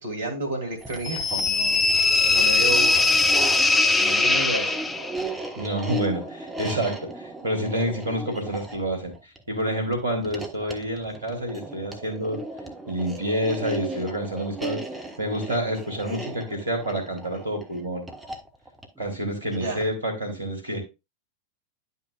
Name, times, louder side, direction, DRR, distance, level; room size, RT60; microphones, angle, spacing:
voice 1, 0.0-1.8 2.2-3.0 4.0-4.7 19.5-19.8, right 2 dB, 60° right, 4 dB, 2.5 m, -31 dB
sound 1, 0.7-20.0, right 2 dB, 10° right, 1.2 m, -37 dB
sound 2, 1.1-5.2, left 3 dB, 10° left, 0.6 m, -21 dB
voice 2, 5.5-12.4 12.9-14.8 15.2-18.1 19.0-20.8, right 1 dB, 80° right, 3 dB, 2.5 m, -28 dB
11.0 x 5.5 x 2.4 m, 0.25 s
figure-of-eight pair, 90°, 0 cm